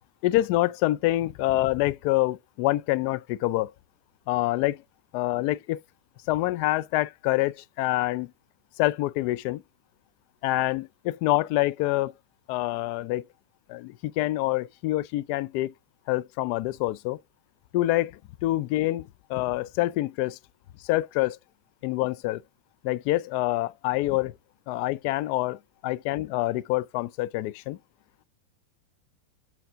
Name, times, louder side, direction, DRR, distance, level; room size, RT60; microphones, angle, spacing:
voice 1, 0.2-3.7 4.3-4.8 5.1-5.8 6.3-8.3 8.8-9.6 10.4-12.1 12.5-13.2 13.7-15.7 16.1-17.2 17.7-20.4 20.8-21.4 21.8-22.4 22.8-24.3 24.7-27.8, left 17 dB, 50° left, 0.4 m, -26 dB
7.9 x 4.7 x 3.5 m
hypercardioid pair, 95°, 0 cm